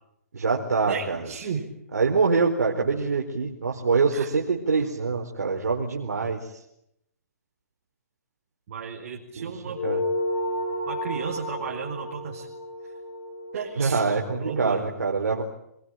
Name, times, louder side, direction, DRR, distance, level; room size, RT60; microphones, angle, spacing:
voice 1, 0.3-1.2 1.9-6.4 9.4-10.0 13.8-15.4, right 4 dB, 85° right, 0 dB, 4.5 m, -25 dB
voice 2, 0.9-1.7 4.1-4.3 4.8-4.9 8.7-9.8 10.9-12.5 12.8-12.9 13.5-14.9, right 6 dB, 60° right, 0 dB, 5.1 m, -34 dB
sound 1, 9.7-14.6, left 1 dB, 50° left, 6.8 m, -32 dB
26.5 x 22.5 x 9.2 m, 0.78 s
hypercardioid pair, 135°, 9 cm